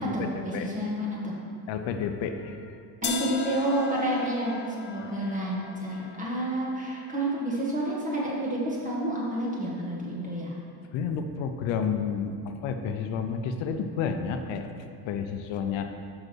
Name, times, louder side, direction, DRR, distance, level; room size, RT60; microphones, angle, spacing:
voice 1, 0.0-1.4 3.0-10.5, right 1 dB, 15° right, -4 dB, 1.6 m, -29 dB
voice 2, 1.7-2.8 5.0-5.1 5.6-5.7 10.9-14.7 15.1-15.9, left 6 dB, 80° left, 6 dB, 0.7 m, -31 dB
sound 1, 3.0-9.0, left 6 dB, 25° left, 0.5 m, -39 dB
6.0 x 5.3 x 6.1 m, 2.3 s
cardioid pair, 140°, 46 cm